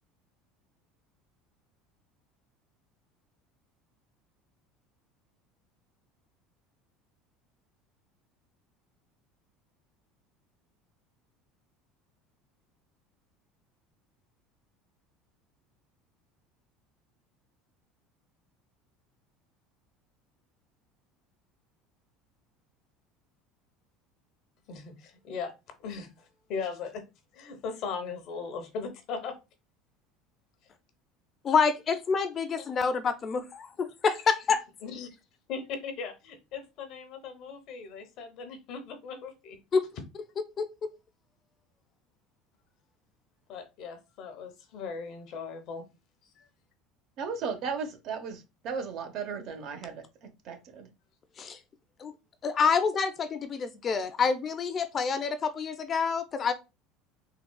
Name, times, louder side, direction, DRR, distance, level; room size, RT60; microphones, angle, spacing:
voice 1, 24.7-25.5 25.8-27.0 27.3-29.4 34.8-35.1 35.5-39.6 43.5-45.9 46.4-46.5, left 5 dB, 60° left, 0.8 m, -38 dB
voice 2, 31.4-34.6 39.7-39.8 40.6-40.9 51.4-51.6 52.0-52.1 52.4-56.5, left 5 dB, 35° left, 0.4 m, -27 dB
voice 3, 47.2-50.9, right 5 dB, 55° right, 0.8 m, -36 dB
3.6 x 2.3 x 2.2 m
supercardioid pair, 120°, 0 cm